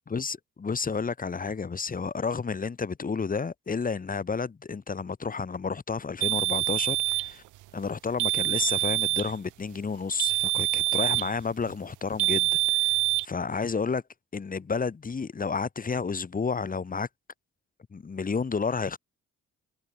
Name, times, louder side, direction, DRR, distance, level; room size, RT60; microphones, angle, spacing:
voice 1, 0.1-7.4 7.7-14.0 14.3-17.1 17.9-19.0, left 5 dB, 30° left, 1.5 m, -31 dB
sound 1, 6.2-7.3 8.2-9.3 10.2-11.3 12.2-13.3, right 18 dB, 85° right, 0.7 m, -25 dB
cardioid pair, 90°, 30 cm